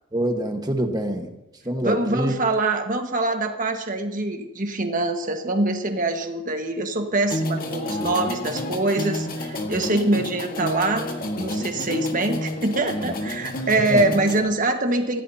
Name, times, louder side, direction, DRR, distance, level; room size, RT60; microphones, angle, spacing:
voice 1, 0.1-1.3 1.6-2.3 13.9-14.1, right 1 dB, 20° right, 4 dB, 1.4 m, -25 dB
voice 2, 1.8-11.1 11.4-15.2, right 2 dB, 40° right, 5 dB, 1.5 m, -24 dB
sound 1, 7.3-14.4, left 1 dB, 45° left, 1.7 m, -30 dB
26.0 x 15.5 x 2.8 m, 0.96 s
head